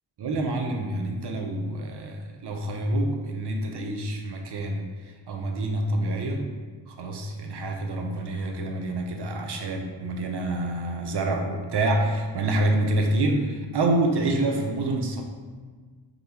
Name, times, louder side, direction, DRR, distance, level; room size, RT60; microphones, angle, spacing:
voice 1, 0.2-4.9 5.3-6.5 6.9-15.2, right 1 dB, 60° right, 3 dB, 0.7 m, -27 dB
5.0 x 2.3 x 2.8 m, 1.5 s
cardioid pair, 45°, 46 cm